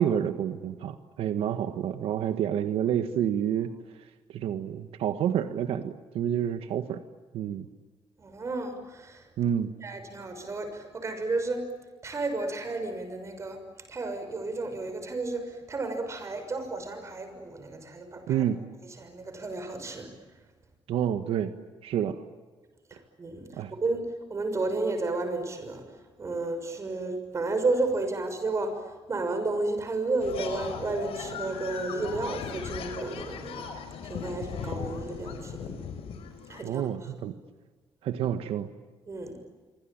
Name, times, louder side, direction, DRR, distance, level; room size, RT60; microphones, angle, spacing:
voice 1, 0.0-3.7 4.3-7.0 7.3-7.7 9.4-9.7 18.3-18.6 20.9-21.5 21.8-22.2 23.6-23.7 36.6-37.3 38.0-38.7, right 9 dB, 90° right, 9 dB, 1.5 m, -28 dB
voice 2, 8.2-9.3 9.8-11.6 12.0-13.6 13.9-18.4 19.0-20.1 22.9-25.8 26.2-33.6 34.0-35.7 36.5-36.8 39.1-39.4, right 3 dB, 30° right, 7 dB, 6.4 m, -32 dB
sound 1, 30.2-36.6, left 7 dB, 80° left, 5.1 m, -38 dB
27.0 x 25.0 x 8.9 m, 1.4 s
cardioid pair, 140°, 10 cm